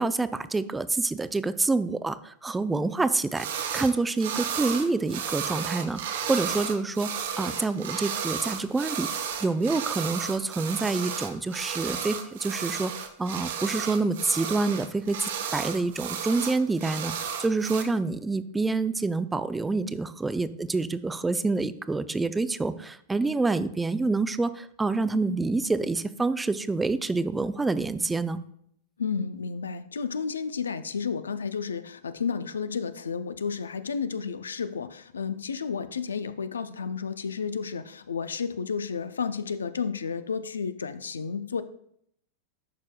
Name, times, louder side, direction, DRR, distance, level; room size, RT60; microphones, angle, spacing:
voice 1, 0.0-3.5 3.7-9.1 9.4-28.4, right 3 dB, 10° right, 13 dB, 0.4 m, -27 dB
sound 1, 3.3-3.9 4.2-17.8, right 7 dB, 70° right, 0.9 m, -33 dB
voice 2, 29.0-41.6, left 6 dB, 90° left, 12 dB, 0.4 m, -32 dB
11.0 x 4.7 x 2.2 m, 0.69 s
hypercardioid pair, 105°, 0 cm